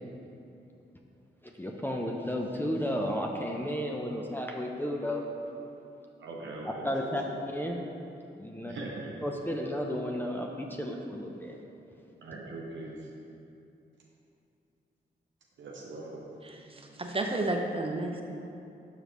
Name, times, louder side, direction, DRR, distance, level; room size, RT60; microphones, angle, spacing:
voice 1, 1.4-5.3 6.8-7.8 8.4-8.7 9.2-11.6, equal, 10° left, 1 dB, 0.6 m, -33 dB
voice 2, 6.2-7.4 7.8-8.0 8.6-9.7 12.2-13.1 15.6-16.3 16.6-17.0, right 2 dB, 75° right, -2 dB, 0.6 m, -42 dB
voice 3, 16.4-18.2, right 2 dB, 30° right, 2 dB, 0.8 m, -32 dB
6.7 x 4.8 x 3.1 m, 2.7 s
cardioid pair, 45°, 19 cm